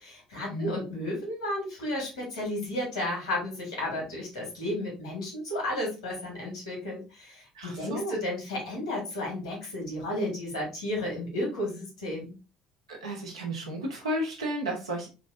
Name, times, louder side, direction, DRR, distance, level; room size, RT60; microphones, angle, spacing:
voice 1, 0.0-12.3, left 1 dB, 80° left, -1 dB, 1.6 m, -33 dB
voice 2, 7.5-8.2 12.9-15.1, right 1 dB, 80° right, -1 dB, 1.0 m, -33 dB
3.3 x 2.6 x 3.4 m, 0.30 s
figure-of-eight pair, 55°, 3 cm